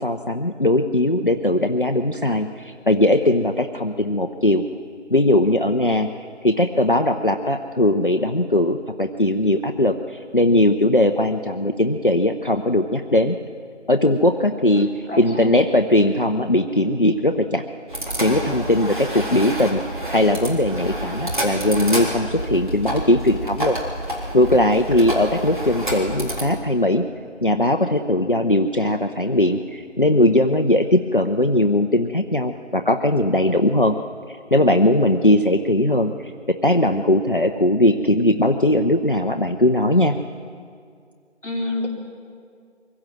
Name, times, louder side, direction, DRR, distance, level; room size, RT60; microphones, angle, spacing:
voice 1, 0.0-4.6 5.1-6.1 6.4-13.4 13.9-14.9 15.2-17.6 18.2-19.8 20.1-23.8 24.3-27.1 27.4-34.0 34.3-40.2, left 1 dB, 45° left, 5 dB, 0.7 m, -19 dB
voice 2, 14.9-15.5 41.4-41.9, left 2 dB, 5° left, -22 dB, 2.5 m, -28 dB
sound 1, 17.9-26.4, right 1 dB, 40° right, 3.8 m, -28 dB
24.0 x 16.0 x 7.5 m, 2.2 s
figure-of-eight pair, 175°, 36 cm